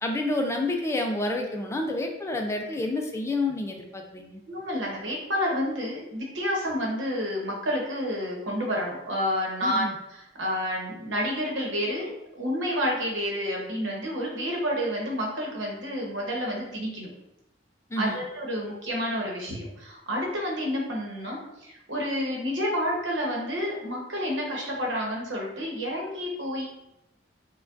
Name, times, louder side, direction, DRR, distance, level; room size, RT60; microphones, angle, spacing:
voice 1, 0.0-4.4 9.6-9.9 17.9-18.2, left 2 dB, 15° left, 2 dB, 0.3 m, -29 dB
voice 2, 4.5-17.1 18.0-26.7, equal, 75° right, -2 dB, 1.0 m, -29 dB
4.4 x 2.3 x 2.5 m, 0.87 s
head